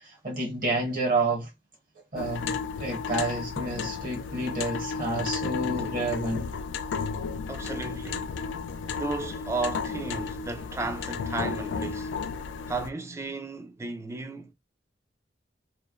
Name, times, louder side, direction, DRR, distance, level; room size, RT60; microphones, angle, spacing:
voice 1, 0.0-1.5 2.1-6.4, right 2 dB, 50° right, 0.8 m, -29 dB
sound 1, 2.2-12.9, left 5 dB, 80° left, 0.3 m, -33 dB
voice 2, 7.5-8.4 9.0-12.2 12.7-14.5, right 3 dB, 15° right, 0.3 m, -34 dB
2.9 x 2.0 x 2.3 m
head